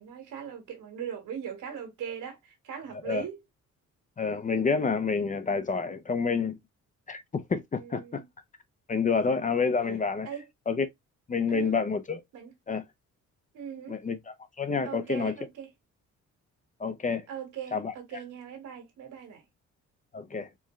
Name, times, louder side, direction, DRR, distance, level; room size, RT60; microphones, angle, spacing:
voice 1, 0.0-3.4 7.7-8.2 9.3-9.4 10.3-10.5 11.5-11.7 12.3-12.5 13.5-14.0 14.8-15.7 17.3-19.5, right 8 dB, 80° right, 1.7 m, -40 dB
voice 2, 4.2-6.6 7.1-8.2 8.9-10.3 10.7-10.9 11.3-12.2 12.7-12.8 13.9-14.2 14.6-15.3 16.8-17.3 17.7-17.9 20.1-20.5, left 5 dB, 25° left, 0.5 m, -28 dB
4.6 x 2.2 x 3.0 m
cardioid pair, 90°, 30 cm